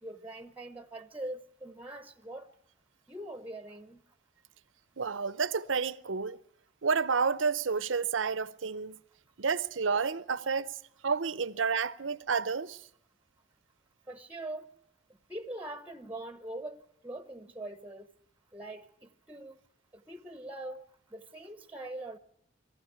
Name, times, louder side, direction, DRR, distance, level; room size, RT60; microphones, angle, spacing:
voice 1, 0.0-2.5 3.1-4.0 14.1-14.7 15.3-18.1 18.5-19.6 19.9-20.8 21.1-22.2, right 1 dB, 10° right, 0.9 m, -42 dB
voice 2, 5.0-6.4 6.8-9.0 9.4-10.8 11.0-12.8, right 5 dB, 90° right, 0.8 m, -30 dB
21.5 x 15.0 x 9.3 m
head